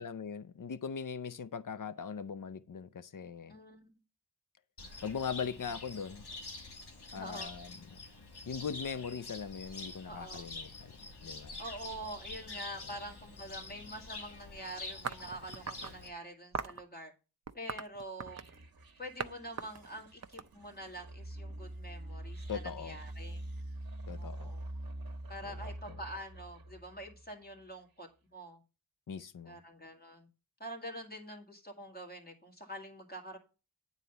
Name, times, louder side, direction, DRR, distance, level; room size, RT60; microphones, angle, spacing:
voice 1, 0.0-3.6 5.0-6.3 7.1-8.0 8.5-10.9 11.2-11.6 22.5-23.0 24.1-24.5 25.4-25.5 29.1-29.6, left 6 dB, 55° left, 0.6 m, -40 dB
voice 2, 3.5-3.9 7.1-7.5 10.1-10.5 11.6-17.1 17.5-18.5 19.0-23.4 24.2-24.6 25.3-28.6 29.4-30.3 30.6-33.4, right 1 dB, 25° left, 2.1 m, -46 dB
Cricket, 4.8-16.1, left 3 dB, 85° left, 1.7 m, -47 dB
sound 1, 15.0-15.9 16.5-16.8 17.5-18.6 19.2-19.3 19.6-21.0, right 5 dB, 45° right, 0.5 m, -40 dB
sound 2, 18.2-27.4, right 1 dB, 65° right, 1.2 m, -45 dB
9.3 x 4.1 x 6.8 m
wide cardioid pair, 70°, 38 cm